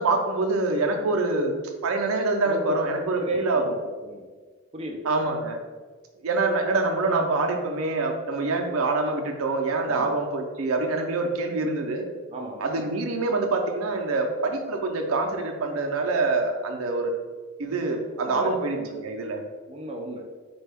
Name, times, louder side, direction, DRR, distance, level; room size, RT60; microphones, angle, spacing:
voice 1, 0.0-1.5 1.8-3.8 5.0-5.6 6.2-12.0 12.6-17.1 17.6-19.4, right 3 dB, 85° right, 3 dB, 0.5 m, -25 dB
voice 2, 2.4-2.8 3.2-4.2 4.7-5.1 9.9-10.1 12.3-12.7 17.8-18.9 19.7-20.2, equal, 30° right, 0 dB, 0.4 m, -35 dB
4.3 x 2.2 x 3.3 m, 1.5 s
head